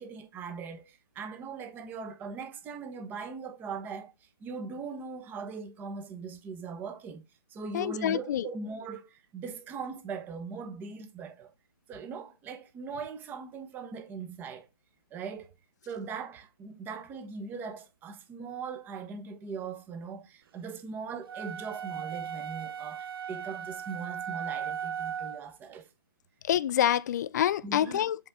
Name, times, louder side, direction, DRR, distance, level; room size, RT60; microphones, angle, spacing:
voice 1, 0.0-4.1 4.4-7.2 7.5-11.5 11.9-14.7 15.1-15.5 15.9-25.9 27.6-28.1, right 5 dB, 15° right, 1.0 m, -40 dB
voice 2, 7.7-8.4 26.5-28.2, left 10 dB, 45° left, 0.4 m, -27 dB
sound 1, 21.3-25.5, right 8 dB, 65° right, 0.4 m, -37 dB
7.8 x 4.4 x 3.6 m
hypercardioid pair, 145°, 13 cm